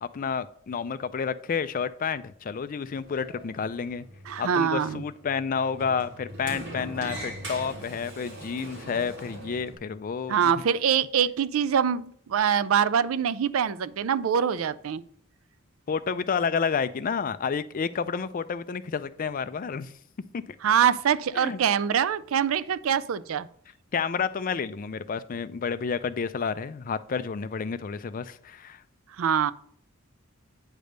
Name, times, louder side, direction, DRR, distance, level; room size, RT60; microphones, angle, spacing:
voice 1, 0.0-4.1 4.4-10.4 15.9-19.9 21.4-21.6 23.9-28.8, left 6 dB, 40° left, 0.4 m, -30 dB
Sliding door, 2.7-9.7, right 1 dB, 55° right, 2.6 m, -41 dB
voice 2, 4.3-5.0 10.3-15.0 20.6-23.5 29.2-29.5, right 8 dB, 75° right, 0.4 m, -24 dB
8.9 x 3.4 x 6.5 m
head